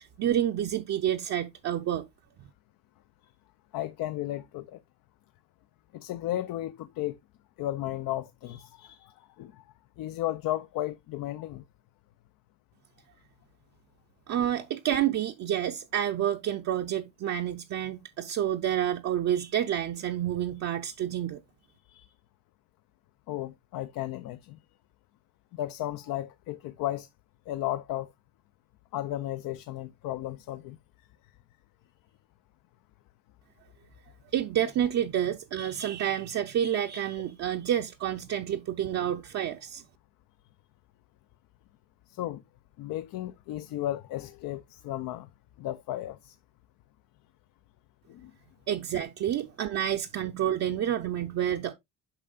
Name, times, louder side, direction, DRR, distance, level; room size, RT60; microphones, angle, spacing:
voice 1, 0.0-2.1 14.3-21.4 34.3-39.8 48.7-51.7, right 10 dB, 50° right, 0.6 m, -29 dB
voice 2, 3.7-4.8 5.9-7.2 7.6-9.6 10.0-11.6 21.9-22.1 23.3-24.6 25.5-27.1 27.5-28.1 28.9-30.8 42.1-42.4 42.8-45.3 45.6-46.4 48.1-48.3, left 14 dB, 75° left, 0.5 m, -34 dB
8.8 x 5.7 x 2.3 m
cardioid pair, 120°, 35 cm